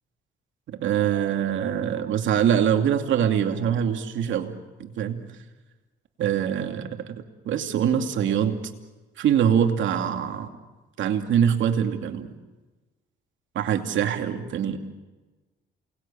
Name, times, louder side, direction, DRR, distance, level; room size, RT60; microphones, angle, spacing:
voice 1, 0.7-4.5 4.8-5.2 6.2-8.6 9.2-10.5 11.0-12.3 13.5-14.8, right 9 dB, 75° right, 5 dB, 2.6 m, -24 dB
28.5 x 20.0 x 8.7 m, 1.2 s
cardioid pair, 90°, 20 cm